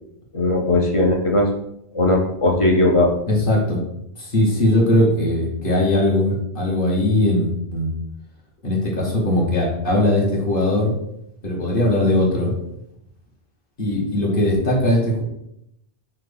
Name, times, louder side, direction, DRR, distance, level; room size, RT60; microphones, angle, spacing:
voice 1, 0.3-1.5 1.9-3.1, left 2 dB, 40° left, 0 dB, 0.5 m, -18 dB
voice 2, 3.3-3.8 4.2-7.9 8.6-10.9 11.4-12.5 13.8-15.2, left 1 dB, 55° left, -3 dB, 1.2 m, -19 dB
5.7 x 2.2 x 3.2 m, 0.79 s
omnidirectional pair, 1.1 m